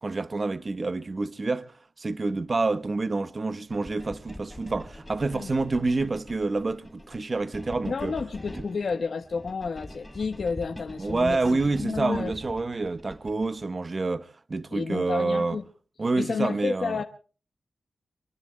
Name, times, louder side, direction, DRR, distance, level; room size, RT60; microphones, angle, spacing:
voice 1, 0.0-1.7 2.0-8.1 11.0-15.6 16.0-17.0, right 3 dB, 40° right, 0.9 m, -28 dB
sound 1, 3.7-13.7, left 1 dB, 10° left, 7.7 m, -44 dB
voice 2, 7.9-12.3 14.7-15.6 16.2-17.0, left 5 dB, 65° left, 1.1 m, -31 dB
25.0 x 23.5 x 2.2 m
wide cardioid pair, 85°, 0 cm